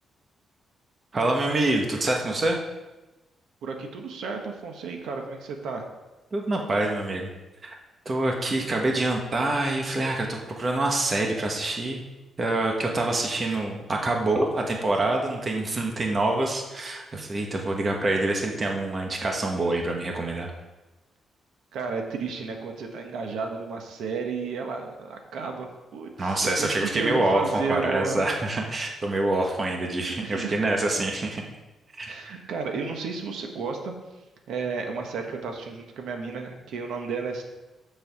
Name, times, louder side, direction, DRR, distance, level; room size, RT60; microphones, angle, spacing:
voice 1, 1.1-2.6 6.3-7.3 7.6-7.8 8.0-12.0 12.4-20.5 26.2-31.4 32.0-32.1, right 2 dB, 25° right, 1 dB, 1.1 m, -26 dB
voice 2, 3.6-5.8 21.7-28.3 30.1-30.5 32.0-33.9 34.5-37.4, right 5 dB, 85° right, 3 dB, 1.3 m, -33 dB
6.8 x 5.7 x 7.0 m, 1.1 s
wide cardioid pair, 160°, 0 cm